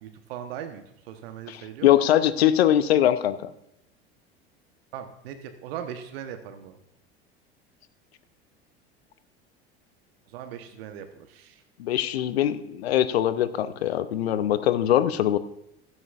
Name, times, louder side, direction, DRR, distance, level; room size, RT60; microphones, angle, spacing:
voice 1, 0.0-1.9 4.9-6.8 10.3-11.6, right 9 dB, 65° right, 7 dB, 1.1 m, -39 dB
voice 2, 1.5-3.5 11.8-15.4, left 11 dB, 70° left, 14 dB, 0.7 m, -22 dB
15.5 x 12.5 x 2.4 m, 0.80 s
figure-of-eight pair, 70°, 32 cm